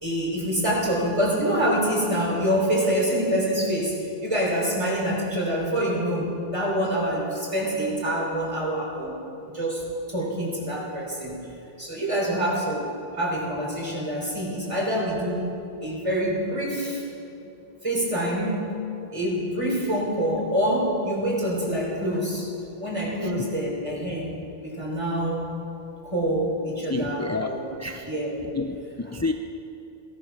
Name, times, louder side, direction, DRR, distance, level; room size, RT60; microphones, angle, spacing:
voice 1, 0.0-9.2 9.5-11.5 11.8-15.5 15.8-17.0 17.8-18.7 19.1-22.5 22.8-25.5 26.0-27.8 28.0-28.5, equal, 30° right, -3 dB, 3.9 m, -26 dB
voice 2, 26.9-28.1 28.6-29.3, left 3 dB, 25° left, 6 dB, 0.4 m, -29 dB
17.0 x 13.5 x 6.0 m, 2.7 s
omnidirectional pair, 1.1 m